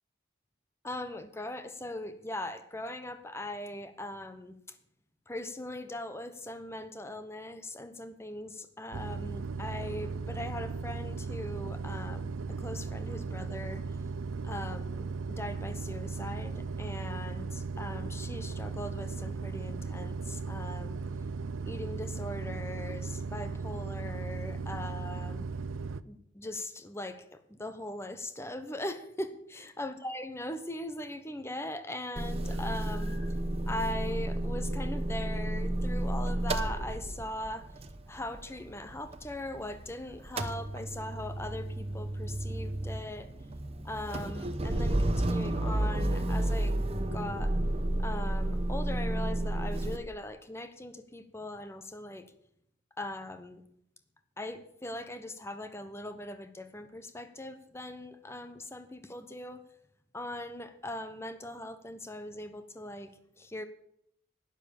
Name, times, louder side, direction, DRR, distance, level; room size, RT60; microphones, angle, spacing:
voice 1, 0.8-4.6 5.3-14.0 14.4-21.0 21.7-25.5 26.0-33.4 33.7-37.7 38.1-43.3 43.8-46.8 47.1-47.6 48.0-52.3 53.0-53.6 54.4-59.7 60.1-63.1 63.4-63.6, left 1 dB, 15° left, 10 dB, 1.0 m, -40 dB
sound 1, 8.9-26.0, right 4 dB, 85° right, 0.5 m, -37 dB
Motor vehicle (road) / Engine starting / Idling, 32.2-39.9 40.1-50.0, right 1 dB, 30° right, 0.9 m, -32 dB
11.5 x 10.0 x 7.1 m, 0.72 s
head